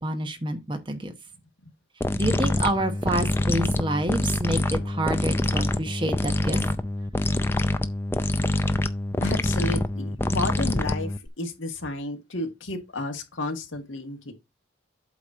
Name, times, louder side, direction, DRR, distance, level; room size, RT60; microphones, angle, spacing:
voice 1, 0.0-1.1 2.2-6.6, right 1 dB, 25° right, 1.0 m, -28 dB
sound 1, 2.0-11.3, left 1 dB, 10° left, 0.4 m, -25 dB
voice 2, 9.2-14.3, left 2 dB, 85° left, 1.7 m, -32 dB
8.3 x 3.0 x 6.1 m
head